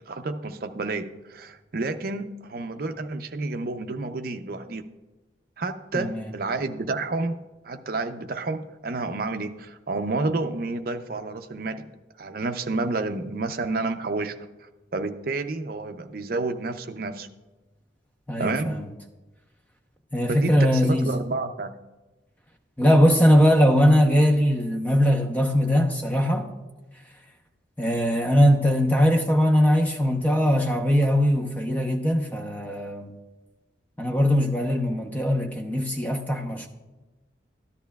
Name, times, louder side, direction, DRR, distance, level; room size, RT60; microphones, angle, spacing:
voice 1, 0.1-4.9 5.6-7.4 7.6-11.8 12.2-14.5 14.9-17.3 18.4-18.8 20.3-21.7, right 3 dB, 50° right, 0.5 m, -30 dB
voice 2, 5.9-6.3 18.3-18.9 20.1-21.1 22.8-26.5 27.8-33.1 34.0-36.7, equal, 10° left, 0.7 m, -21 dB
13.5 x 10.5 x 2.3 m
head